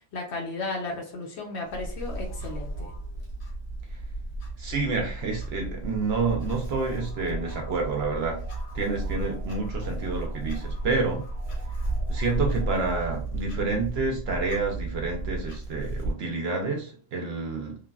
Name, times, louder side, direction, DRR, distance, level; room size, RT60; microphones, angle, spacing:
voice 1, 0.1-2.9, left 3 dB, 60° left, 1 dB, 0.8 m, -34 dB
Clock, 1.7-16.1, right 1 dB, 80° left, 1.4 m, -33 dB
sound 1, 2.1-3.7 5.1-13.1, right 1 dB, 35° right, 1.0 m, -51 dB
voice 2, 4.6-8.4 8.7-11.3 12.1-17.8, right 4 dB, 60° right, 2 dB, 0.7 m, -29 dB
3.2 x 2.1 x 2.3 m, 0.43 s
omnidirectional pair, 1.5 m